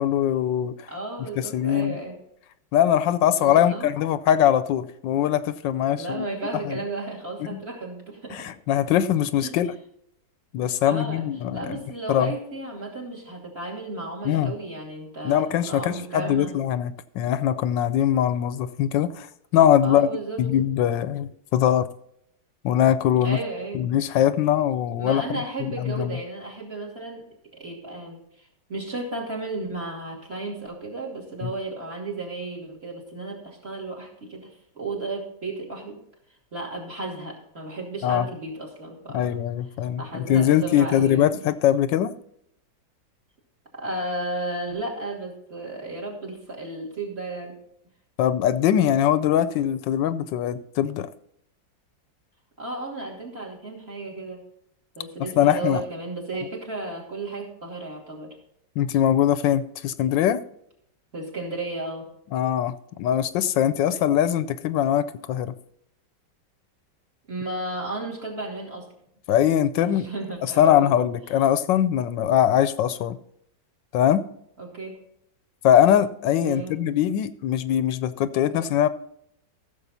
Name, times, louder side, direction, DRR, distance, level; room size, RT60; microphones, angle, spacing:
voice 1, 0.0-0.9 1.4-2.0 2.7-6.3 6.5-6.8 7.5-7.6 8.3-9.7 10.5-11.8 12.1-12.3 14.2-14.5 15.2-19.3 19.5-20.1 20.4-21.9 22.6-23.4 23.7-26.2 31.4-31.5 38.0-38.3 39.1-42.1 48.2-51.1 55.4-55.8 58.8-60.4 62.3-65.5 69.3-70.1 70.6-73.2 73.9-74.2 75.6-78.9, left 10 dB, 80° left, 1.3 m, -22 dB
voice 2, 0.9-2.2 3.4-3.9 5.9-8.5 9.4-9.6 10.8-11.2 11.5-16.5 19.8-20.4 23.2-23.8 25.0-27.3 27.5-36.0 36.5-39.3 40.0-41.3 43.7-47.6 52.6-54.4 55.0-58.4 61.1-62.1 67.3-68.9 69.8-71.0 74.6-75.0 76.4-76.7, right 2 dB, 35° right, 2.9 m, -34 dB
15.0 x 7.0 x 4.1 m
omnidirectional pair, 2.0 m